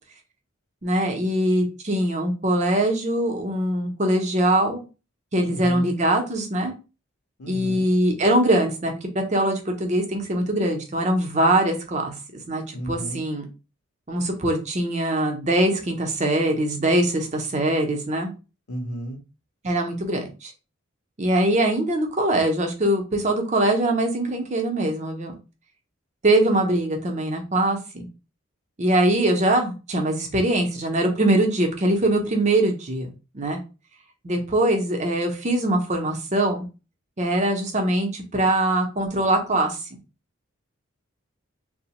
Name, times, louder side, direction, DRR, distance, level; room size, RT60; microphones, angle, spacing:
voice 1, 0.8-4.8 5.3-6.7 7.5-12.1 12.5-13.4 14.1-18.3 19.6-20.5 21.2-25.3 26.2-28.1 28.8-33.1 33.3-33.6 34.2-36.7 37.2-39.8, right 1 dB, 35° right, 3 dB, 0.6 m, -22 dB
voice 2, 5.4-5.9 7.4-7.9 12.7-13.2 18.7-19.2, right 1 dB, 85° left, 4 dB, 0.7 m, -33 dB
2.8 x 2.0 x 2.8 m, 0.31 s
head